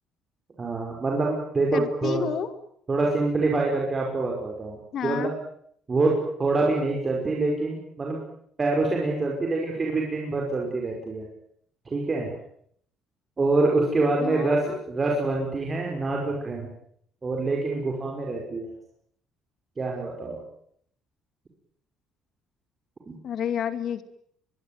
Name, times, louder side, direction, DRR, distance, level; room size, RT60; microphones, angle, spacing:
voice 1, 0.6-2.3 2.9-5.3 5.9-6.1 6.4-8.2 8.6-11.3 11.9-12.3 13.4-16.7 17.2-18.7 19.8-20.4 23.1-23.2, right 3 dB, 20° right, -1 dB, 5.8 m, -26 dB
voice 2, 1.7-2.5 4.9-5.3 14.2-14.8 23.2-24.0, left 8 dB, 50° left, 11 dB, 2.3 m, -30 dB
24.0 x 22.5 x 9.5 m, 0.67 s
cardioid pair, 150°, 0 cm